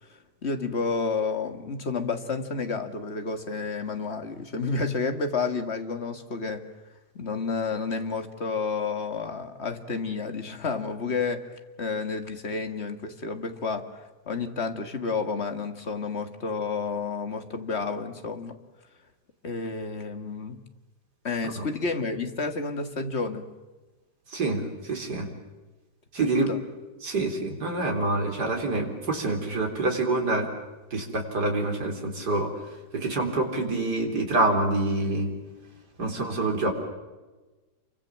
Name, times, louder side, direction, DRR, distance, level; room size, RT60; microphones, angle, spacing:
voice 1, 0.4-6.7 7.1-18.6 19.4-20.6 21.2-23.5 26.2-26.6 36.0-36.3, left 4 dB, 40° left, 7 dB, 2.2 m, -30 dB
voice 2, 24.3-25.3 26.1-26.5 27.0-30.5 30.9-32.5 32.9-35.3 36.0-36.7, right 2 dB, 75° right, 2 dB, 4.5 m, -26 dB
28.5 x 24.5 x 7.5 m, 1.2 s
omnidirectional pair, 1.8 m